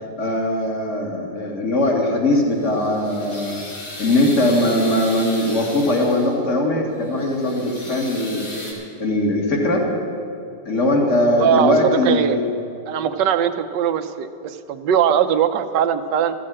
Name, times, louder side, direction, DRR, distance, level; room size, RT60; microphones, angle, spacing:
voice 1, 0.2-3.6 4.0-8.6 9.0-9.8 10.7-12.4, left 1 dB, 40° left, 0 dB, 2.2 m, -20 dB
sound 1, 2.5-6.5 6.9-8.7, left 1 dB, 70° left, 3.7 m, -36 dB
voice 2, 11.4-12.4 12.9-16.3, right 9 dB, 70° right, 10 dB, 1.3 m, -20 dB
14.0 x 7.6 x 9.9 m, 2.7 s
omnidirectional pair, 2.1 m